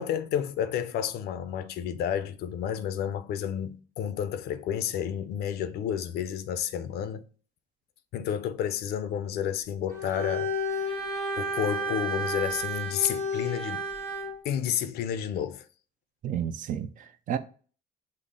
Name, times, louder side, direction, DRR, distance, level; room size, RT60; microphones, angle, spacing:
voice 1, 0.0-7.3 8.1-10.8 11.4-13.9 14.4-15.7, left 9 dB, 70° left, 0.5 m, -31 dB
Bowed string instrument, 9.9-14.4, equal, 75° right, 1.2 m, -31 dB
voice 2, 16.2-17.4, right 9 dB, 50° right, 0.5 m, -31 dB
5.4 x 2.0 x 3.6 m
cardioid pair, 110°, 17 cm